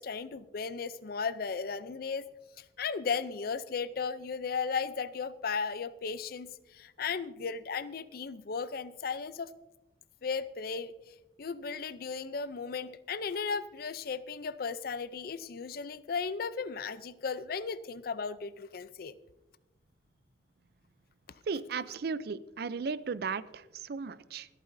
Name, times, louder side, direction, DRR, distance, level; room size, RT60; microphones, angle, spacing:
voice 1, 0.0-2.2 2.6-9.5 10.2-10.9 11.4-19.1, left 5 dB, 55° left, 15 dB, 0.5 m, -35 dB
voice 2, 21.5-24.5, right 5 dB, 60° right, 16 dB, 0.4 m, -35 dB
27.0 x 9.0 x 2.6 m, 1.0 s
head